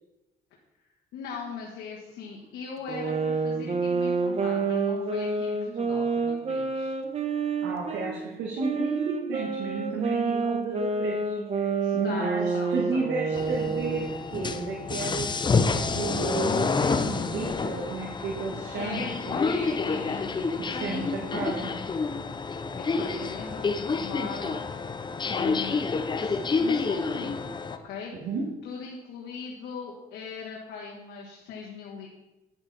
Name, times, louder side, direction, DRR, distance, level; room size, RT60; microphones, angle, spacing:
voice 1, 1.1-7.0 11.8-13.1 18.7-21.8 22.9-24.6 25.2-25.8 26.2-27.5 27.8-28.1 28.6-32.1, left 5 dB, 85° left, -3 dB, 1.5 m, -39 dB
sound 1, 2.9-8.1 8.6-14.2, right 4 dB, 35° right, 1.2 m, -28 dB
voice 2, 7.6-19.4 20.6-21.7 22.9-23.2 28.1-28.5, right 4 dB, 85° right, -2 dB, 1.7 m, -33 dB
sound 2, 13.3-27.8, left 4 dB, 25° left, 0.7 m, -28 dB
9.9 x 8.1 x 4.1 m, 1.0 s
cardioid pair, 100°, 18 cm